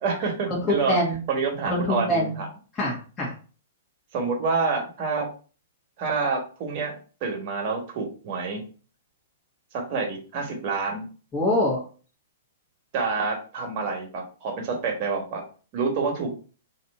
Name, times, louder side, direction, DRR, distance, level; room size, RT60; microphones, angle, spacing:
voice 1, 0.0-1.0 1.3-2.4 4.1-5.3 6.0-8.7 9.9-11.1 12.9-15.4 15.7-16.3, right 4 dB, 45° right, 1 dB, 1.4 m, -27 dB
voice 2, 0.9-1.2 1.6-2.4 2.8-3.3 11.3-11.8, equal, 20° left, -5 dB, 1.7 m, -24 dB
3.2 x 2.8 x 4.1 m, 0.38 s
hypercardioid pair, 125°, 0 cm